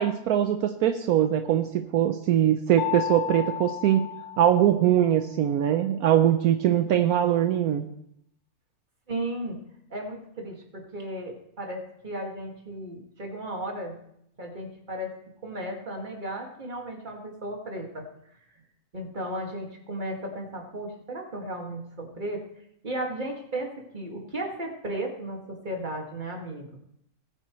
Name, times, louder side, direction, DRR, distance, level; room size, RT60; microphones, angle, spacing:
voice 1, 0.0-4.1 4.4-7.9, right 10 dB, 75° right, 7 dB, 1.1 m, -22 dB
Mallet percussion, 2.8-5.3, left 12 dB, 55° left, 1.0 m, -34 dB
voice 2, 9.1-9.6 9.9-14.0 14.4-15.1 15.4-18.1 18.9-22.4 22.8-26.7, right 1 dB, 30° right, 1 dB, 2.1 m, -35 dB
18.5 x 8.9 x 3.1 m, 0.73 s
omnidirectional pair, 1.6 m